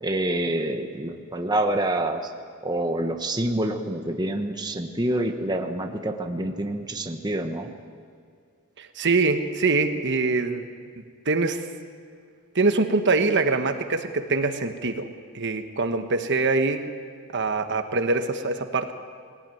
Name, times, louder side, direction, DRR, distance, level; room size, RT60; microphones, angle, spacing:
voice 1, 0.0-2.3 2.6-7.7, right 1 dB, 20° right, 4 dB, 1.2 m, -27 dB
voice 2, 8.8-10.6 11.2-11.6 12.5-15.1 15.3-16.8 17.3-18.9, right 3 dB, 50° right, 7 dB, 1.2 m, -24 dB
20.5 x 17.5 x 9.2 m, 2.2 s
head